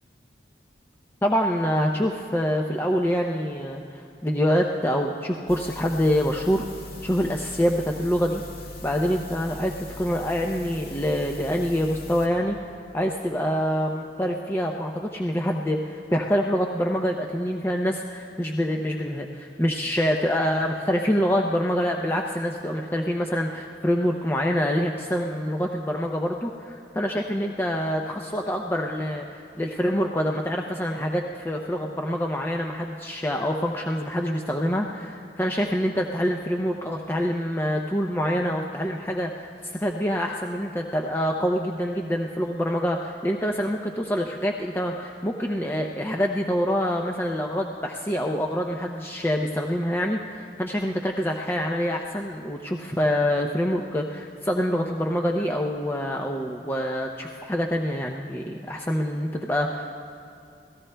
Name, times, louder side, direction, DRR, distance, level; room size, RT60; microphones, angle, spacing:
voice 1, 1.2-6.6 7.0-8.4 8.8-12.6 12.9-60.0, equal, 15° left, 1 dB, 0.5 m, -26 dB
sound 1, 5.5-12.3, left 1 dB, 55° left, 1.9 m, -40 dB
27.0 x 17.5 x 2.2 m, 2.8 s
head